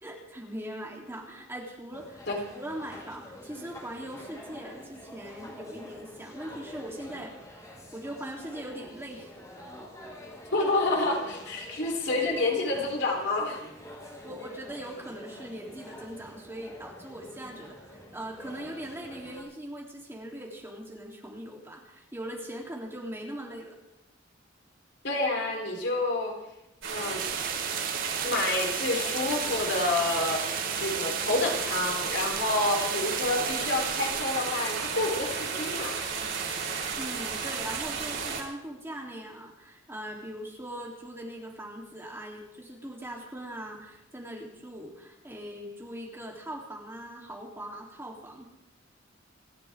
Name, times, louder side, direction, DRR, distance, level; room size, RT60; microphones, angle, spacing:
voice 1, 0.0-2.2 2.5-7.3 7.7-9.3 10.6-10.7 14.2-23.8 36.9-48.5, right 1 dB, 15° right, -2 dB, 3.3 m, -40 dB
sound 1, 1.9-19.4, left 1 dB, 20° left, 6.8 m, -47 dB
voice 2, 10.5-13.6 25.0-26.4 26.9-27.2 28.2-35.9, left 2 dB, 65° left, 1 dB, 3.9 m, -28 dB
sound 2, 26.8-38.4, right 5 dB, 80° right, 5.1 m, -33 dB
sound 3, 27.2-34.2, right 10 dB, 45° right, 0.7 m, -35 dB
29.0 x 12.0 x 3.7 m, 0.87 s
head